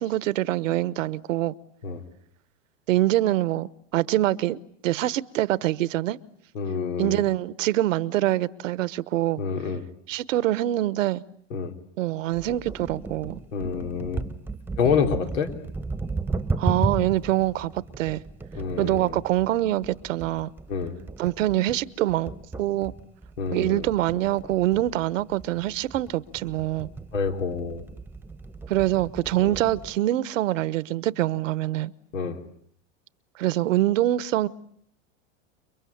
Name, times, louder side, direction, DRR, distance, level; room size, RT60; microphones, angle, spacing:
voice 1, 0.0-1.5 2.9-6.2 7.0-9.4 10.1-11.2 12.0-13.4 14.9-15.0 16.6-18.2 18.8-20.5 21.2-22.3 22.6-22.9 23.5-26.9 28.7-31.9 33.4-34.5, right 15 dB, 80° right, 1.1 m, -25 dB
voice 2, 6.5-7.3 9.4-9.9 11.5-11.7 13.5-14.3 14.8-15.5 18.6-19.2 20.7-21.0 23.4-23.9 27.1-27.8 29.4-29.6 32.1-32.4, left 6 dB, 85° left, 4.1 m, -27 dB
sound 1, 12.3-30.0, right 3 dB, 5° right, 1.2 m, -35 dB
29.5 x 23.0 x 8.6 m
supercardioid pair, 120°, 38 cm